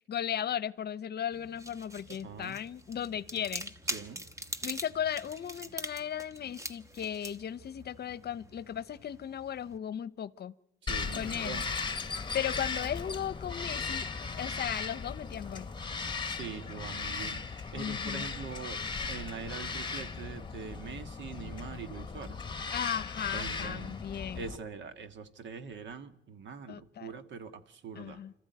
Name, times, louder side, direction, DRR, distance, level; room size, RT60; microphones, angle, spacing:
voice 1, 0.1-3.7 4.6-10.5 11.1-11.6 12.3-14.1 14.4-15.7 17.8-18.3 22.7-24.4 26.7-27.1 27.9-28.3, left 9 dB, 55° left, 0.8 m, -36 dB
sound 1, 1.3-9.8, right 1 dB, 15° right, 1.3 m, -43 dB
voice 2, 2.2-2.6 3.9-4.2 10.8-11.7 16.3-22.4 23.3-24.0 24.4-28.2, right 5 dB, 65° right, 1.7 m, -43 dB
Bird vocalization bird call bird song, 10.9-24.6, left 4 dB, 25° left, 1.4 m, -37 dB
26.0 x 14.5 x 9.4 m
cardioid pair, 90°, 20 cm